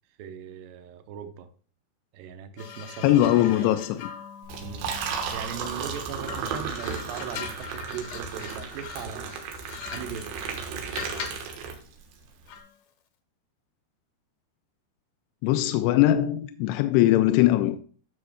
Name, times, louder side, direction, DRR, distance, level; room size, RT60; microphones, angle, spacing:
voice 1, 0.2-1.5 2.1-3.8 4.6-4.9 5.3-9.4 9.9-10.3, right 7 dB, 75° right, 2.3 m, -39 dB
sound 1, 2.6-5.8 6.2-11.5 12.5-12.7, left 7 dB, 70° left, 2.3 m, -41 dB
voice 2, 3.0-4.1 15.4-17.8, left 14 dB, 85° left, 2.6 m, -21 dB
Liquid, 4.4-12.1, right 5 dB, 90° right, 3.5 m, -34 dB
12.5 x 6.5 x 2.2 m
omnidirectional pair, 4.7 m